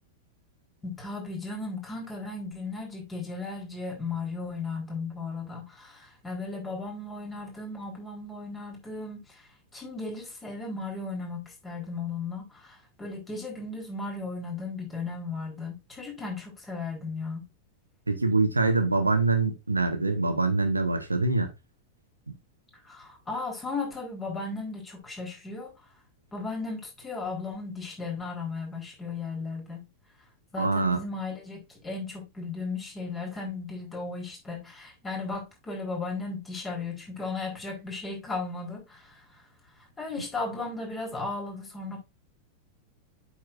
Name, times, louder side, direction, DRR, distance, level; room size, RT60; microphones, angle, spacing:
voice 1, 0.8-17.5 22.8-25.7 26.3-29.9 30.5-39.4 40.0-42.0, left 3 dB, 15° left, 3.9 m, -36 dB
voice 2, 18.1-21.5 30.6-31.0, right 3 dB, 80° right, 1.3 m, -24 dB
8.3 x 6.5 x 2.6 m
figure-of-eight pair, 90°, 0 cm